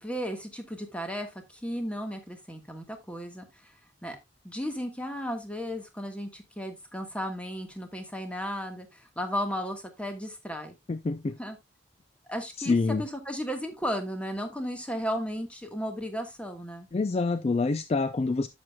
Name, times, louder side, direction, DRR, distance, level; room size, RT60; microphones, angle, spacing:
voice 1, 0.0-3.7 4.0-4.2 4.4-10.7 11.4-11.6 12.3-16.9, equal, 5° left, 1.4 m, -35 dB
voice 2, 10.9-11.4 12.6-13.0 16.9-18.5, left 3 dB, 35° left, 0.4 m, -26 dB
11.0 x 7.2 x 2.2 m
head